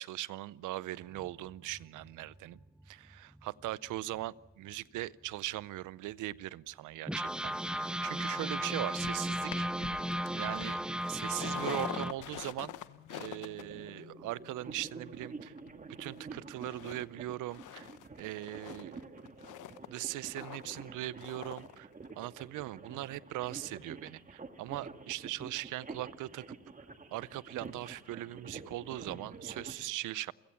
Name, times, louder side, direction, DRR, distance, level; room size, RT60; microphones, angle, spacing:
voice 1, 0.0-2.6 2.9-9.7 10.3-10.8 11.1-12.8 13.1-15.5 16.0-17.9 18.2-19.0 19.9-21.9 22.2-26.6 27.1-30.3, right 16 dB, 85° right, 20 dB, 0.6 m, -40 dB
sound 1, 1.0-4.2 4.7-4.8 5.0-5.2 5.8-5.9 7.1-12.1, equal, 5° right, 0.7 m, -36 dB
sound 2, 9.0-16.2 16.6-17.0 17.3-21.8 22.1-22.2, left 12 dB, 80° left, 1.1 m, -46 dB
sound 3, 13.6-29.7, right 4 dB, 25° right, 1.8 m, -49 dB
29.5 x 16.0 x 7.2 m, 1.1 s
cardioid pair, 90°, 30 cm